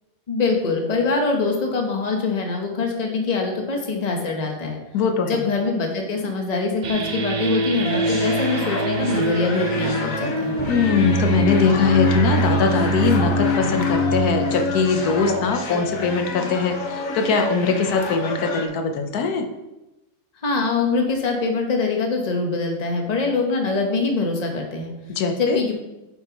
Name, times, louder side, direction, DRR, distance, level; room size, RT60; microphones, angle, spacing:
voice 1, 0.3-4.8 5.3-10.5 20.4-24.9 25.4-25.7, left 4 dB, 30° left, 2 dB, 1.1 m, -23 dB
voice 2, 4.9-5.5 10.7-19.4 25.1-25.6, left 5 dB, 85° left, 5 dB, 1.3 m, -21 dB
sound 1, 6.8-16.2, equal, 65° right, 0.4 m, -24 dB
sound 2, 7.8-18.7, left 3 dB, 60° left, 1.3 m, -29 dB
8.3 x 7.0 x 3.0 m, 1.0 s
omnidirectional pair, 1.6 m